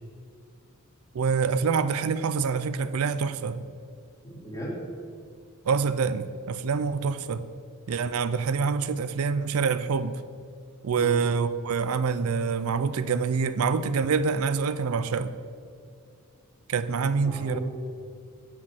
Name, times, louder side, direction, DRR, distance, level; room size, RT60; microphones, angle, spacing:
voice 1, 1.1-3.6 5.7-7.4 7.9-10.1 10.8-15.3 16.7-17.6, right 5 dB, 80° right, 13 dB, 0.4 m, -26 dB
voice 2, 4.2-4.8 10.9-11.2 17.2-17.6, equal, 15° left, -4 dB, 2.4 m, -36 dB
7.6 x 6.2 x 7.2 m, 2.3 s
head